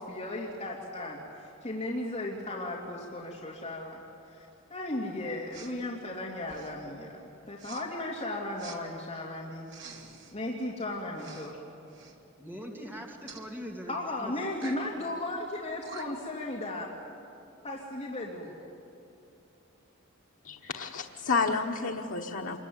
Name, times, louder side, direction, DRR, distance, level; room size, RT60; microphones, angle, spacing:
voice 1, 0.0-4.0 4.3-7.2 7.5-9.7 10.3-11.5 13.9-17.0 17.6-18.5, left 1 dB, 30° left, -4 dB, 2.7 m, -36 dB
Respiratory sounds, 5.5-5.8 6.4-6.8 7.6-7.8 8.6-8.8 9.7-10.3 11.1-11.5 11.9-12.2 13.3-13.5 14.5-14.9 15.5-15.6 15.8-16.3, right 5 dB, 60° right, 2.3 m, -47 dB
voice 2, 12.4-14.3 14.6-14.8, equal, 10° right, -1 dB, 2.5 m, -42 dB
voice 3, 20.4-22.6, left 4 dB, 85° left, 0 dB, 1.2 m, -30 dB
26.5 x 22.5 x 9.4 m, 2.8 s
head